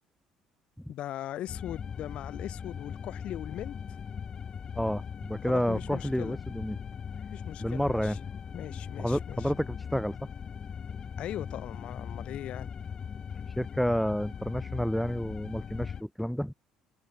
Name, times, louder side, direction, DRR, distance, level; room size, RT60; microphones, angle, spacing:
voice 1, 0.9-3.8 5.5-6.4 7.3-8.2 8.5-9.5 11.2-12.7, left 12 dB, 65° left, 3.2 m, -39 dB
sound 1, 1.5-16.0, left 7 dB, 40° left, 0.6 m, -39 dB
voice 2, 4.8-6.8 7.6-8.2 9.0-10.2 13.6-16.5, equal, ahead, 0.4 m, -30 dB
supercardioid pair, 90°, 2 cm